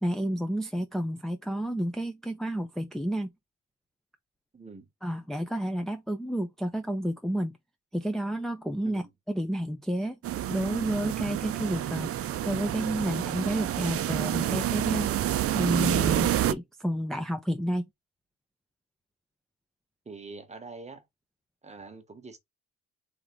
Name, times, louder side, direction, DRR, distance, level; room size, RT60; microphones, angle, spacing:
voice 1, 0.0-3.3 5.0-7.6 7.9-9.0 9.3-10.2 10.5-15.1 15.5-17.8, right 1 dB, ahead, 0.6 m, -30 dB
voice 2, 4.5-4.9 8.8-9.1 20.0-21.0 21.6-22.4, right 4 dB, 20° right, 1.1 m, -44 dB
sound 1, 10.2-16.5, right 12 dB, 50° right, 0.5 m, -28 dB
3.6 x 3.5 x 3.2 m
cardioid pair, 90°, 30 cm